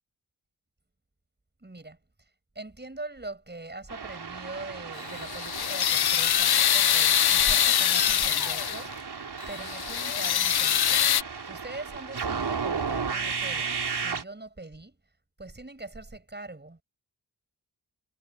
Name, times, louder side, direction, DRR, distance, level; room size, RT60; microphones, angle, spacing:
voice 1, 1.6-2.3 2.5-9.2 9.5-11.1 11.4-15.0 15.4-16.8, right 2 dB, 25° right, 7.5 m, -42 dB
sound 1, 3.9-14.2, right 5 dB, 75° right, 4.3 m, -35 dB
sound 2, 5.0-8.9 9.4-11.2, left 10 dB, 70° left, 0.7 m, -24 dB
wide cardioid pair, 100°, 39 cm